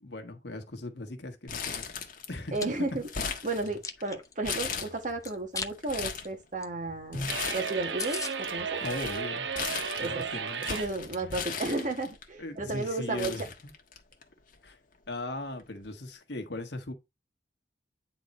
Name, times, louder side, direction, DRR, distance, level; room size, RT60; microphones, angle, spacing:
voice 1, 0.0-2.7 7.1-7.3 8.8-9.5 9.9-10.6 12.4-13.4 14.6-14.8 15.1-16.9, left 2 dB, 70° left, 1.5 m, -38 dB
Crumpling crinkling, 1.5-2.5 2.8-4.0 4.4-5.3 5.7-6.3 7.1-7.9 8.2-12.2 12.8-12.9 13.2-14.2 14.5-14.6 15.6-15.8, left 6 dB, 50° left, 1.4 m, -36 dB
Chewing mastication, 2.3-2.7 3.2-4.7 5.2-5.7 6.1-6.3 6.6-6.7 7.0-7.1 7.4-7.5 7.7-7.8 8.0-8.3, left 5 dB, 20° left, 0.8 m, -37 dB
voice 2, 2.5-3.0 3.4-8.8 10.0-10.3 10.7-13.5, right 2 dB, 45° right, 1.4 m, -33 dB
sound 1, 7.3-10.9, right 6 dB, 75° right, 0.7 m, -34 dB
9.5 x 4.0 x 4.2 m
head